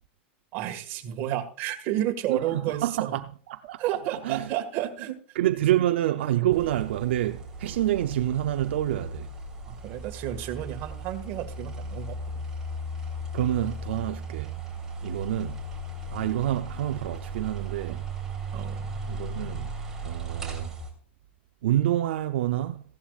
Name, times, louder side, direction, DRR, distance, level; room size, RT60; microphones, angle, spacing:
voice 1, 0.5-3.1 3.8-5.2 9.6-12.5 17.9-18.0 18.5-19.0, right 12 dB, 40° right, 1.7 m, -31 dB
voice 2, 2.3-3.8 4.2-4.5 5.3-9.3 13.3-14.5 15.0-15.6 16.1-18.0 19.1-19.7 20.0-20.7 21.6-22.8, right 13 dB, 80° right, 0.6 m, -27 dB
sound 1, 6.5-20.9, right 1 dB, 10° right, 2.9 m, -37 dB
15.5 x 11.5 x 2.4 m
supercardioid pair, 150°, 6 cm